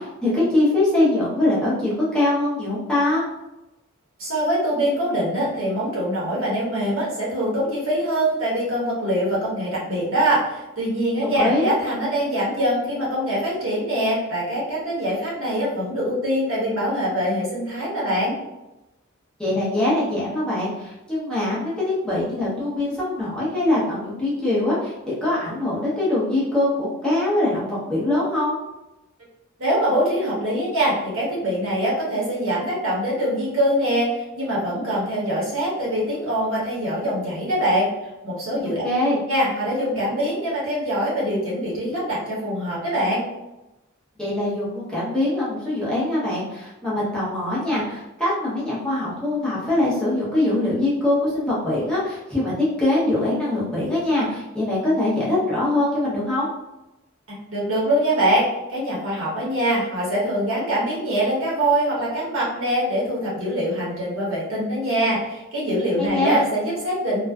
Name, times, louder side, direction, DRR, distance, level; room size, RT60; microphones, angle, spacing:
voice 1, 0.0-3.2 11.2-11.7 19.4-28.6 38.8-39.2 44.2-56.5 66.0-66.4, left 1 dB, 5° left, -10 dB, 0.7 m, -23 dB
voice 2, 4.2-18.4 29.6-37.9 38.2-38.8 39.3-43.2 57.3-67.2, equal, 70° right, -7 dB, 1.1 m, -23 dB
2.4 x 2.2 x 2.3 m, 0.96 s
head